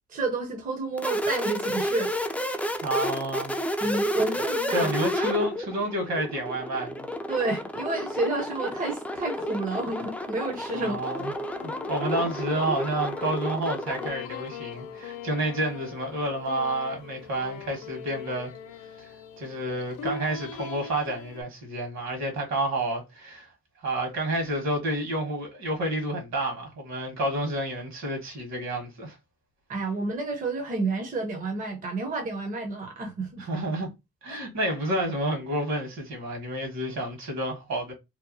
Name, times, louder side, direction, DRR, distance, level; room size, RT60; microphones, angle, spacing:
voice 1, 0.1-2.1 3.8-4.9 5.2-5.3 7.3-11.2 29.7-33.4, right 3 dB, 30° right, 0.6 m, -30 dB
sound 1, 1.0-14.1, equal, 5° left, 0.3 m, -31 dB
voice 2, 2.8-3.6 4.7-7.1 10.7-11.3 11.6-18.5 19.0-19.1 19.4-23.5 23.8-29.2 33.4-33.9 34.2-37.9, right 1 dB, 65° right, 1.5 m, -29 dB
sound 2, 10.2-21.4, left 7 dB, 85° left, 0.5 m, -41 dB
2.8 x 2.2 x 2.6 m
cardioid pair, 90°, 30 cm